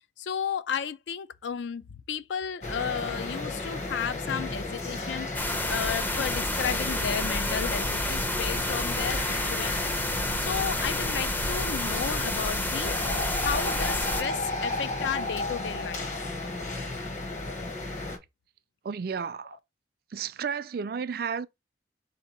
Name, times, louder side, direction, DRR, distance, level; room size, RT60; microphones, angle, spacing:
voice 1, 0.2-5.3 5.7-10.0 10.4-13.0 13.4-16.3, left 7 dB, 80° left, 0.4 m, -33 dB
sound 1, 2.6-18.2, left 2 dB, 40° left, 0.9 m, -34 dB
sound 2, 5.3-14.2, left 1 dB, 10° left, 0.5 m, -30 dB
voice 2, 18.8-19.6 20.1-21.5, right 6 dB, 55° right, 0.3 m, -32 dB
4.3 x 2.8 x 4.1 m
head